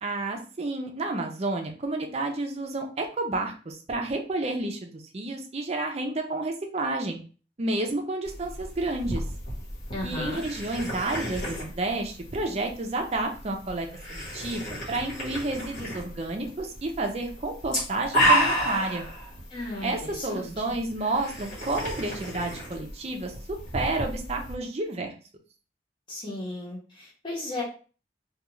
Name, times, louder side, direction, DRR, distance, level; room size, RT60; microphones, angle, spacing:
voice 1, 0.0-7.2 7.6-9.2 10.0-19.1 19.8-25.1, right 2 dB, 35° right, 3 dB, 0.5 m, -30 dB
sound 1, 8.2-24.5, equal, 45° left, 1.2 m, -32 dB
voice 2, 9.9-10.4 19.5-20.6 26.1-27.6, left 2 dB, 25° left, -4 dB, 0.9 m, -35 dB
2.3 x 2.3 x 3.0 m, 0.38 s
head